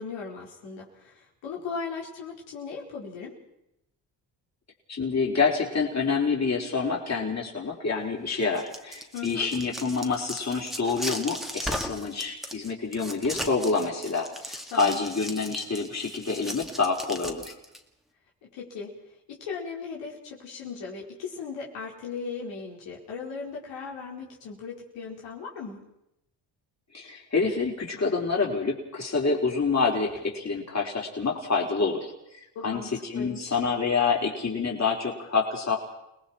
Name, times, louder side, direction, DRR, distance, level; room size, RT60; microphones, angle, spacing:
voice 1, 0.0-3.4 9.1-9.5 11.9-12.2 14.7-15.0 18.5-18.9 19.3-25.8 32.5-33.6, left 5 dB, 90° left, -3 dB, 4.8 m, -38 dB
voice 2, 4.9-17.5 26.9-32.1 32.6-35.8, left 4 dB, 35° left, -1 dB, 5.1 m, -27 dB
sound 1, 8.4-17.8, equal, ahead, 2.2 m, -37 dB
29.5 x 19.5 x 4.5 m, 0.84 s
cardioid pair, 75°, 43 cm